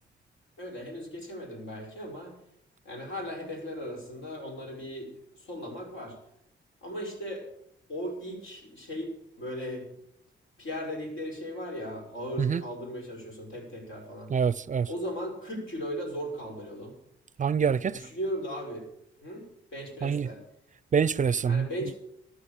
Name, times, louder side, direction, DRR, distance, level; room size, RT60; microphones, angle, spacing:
voice 1, 0.6-2.4 2.9-6.2 6.8-7.5 7.9-10.0 10.6-14.3 14.9-17.0 17.9-18.9 19.2-20.4 21.5-22.0, equal, 75° left, 5.3 m, -37 dB
voice 2, 14.3-14.9 17.4-18.0 20.0-20.3 20.9-21.7, right 6 dB, 40° right, 0.5 m, -25 dB
14.0 x 8.9 x 7.3 m
cardioid pair, 65°, 20 cm